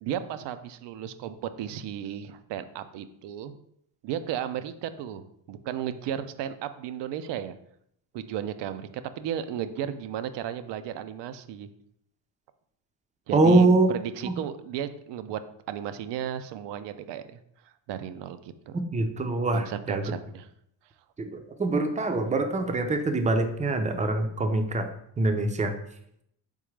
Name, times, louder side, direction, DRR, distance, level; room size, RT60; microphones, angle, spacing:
voice 1, 0.0-3.5 4.0-5.2 5.5-7.6 8.1-11.7 13.3-15.4 15.7-17.4 17.9-18.8 19.5-20.5, right 10 dB, 70° right, 11 dB, 0.5 m, -34 dB
voice 2, 13.3-13.9 14.2-14.4 18.9-20.1 21.2-21.3 21.6-24.9 25.2-25.7, right 2 dB, 15° right, 6 dB, 0.5 m, -24 dB
4.1 x 3.6 x 3.2 m, 0.72 s
cardioid pair, 80°, 43 cm